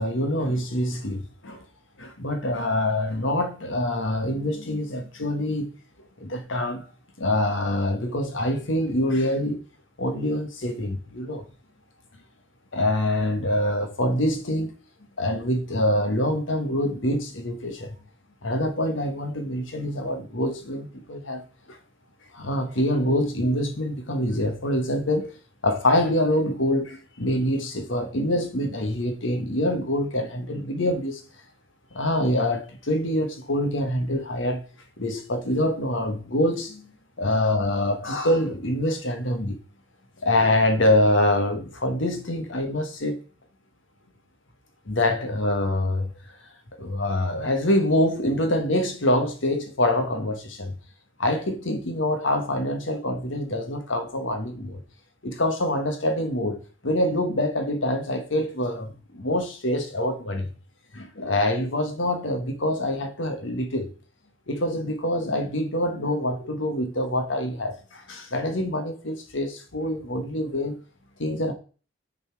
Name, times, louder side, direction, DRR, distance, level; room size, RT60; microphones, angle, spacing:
voice 1, 0.0-1.6 2.0-5.8 6.2-6.9 7.2-9.6 10.0-11.4 12.7-14.7 15.2-18.0 18.4-21.4 21.7-21.8 22.3-25.3 25.6-31.2 31.9-34.6 35.0-36.9 37.2-39.6 40.2-43.2 44.9-46.1 46.8-50.7 51.2-54.8 55.2-60.5 60.9-63.9 64.5-70.8 71.2-71.5, left 1 dB, 70° left, 1.3 m, -25 dB
7.0 x 4.1 x 4.6 m
head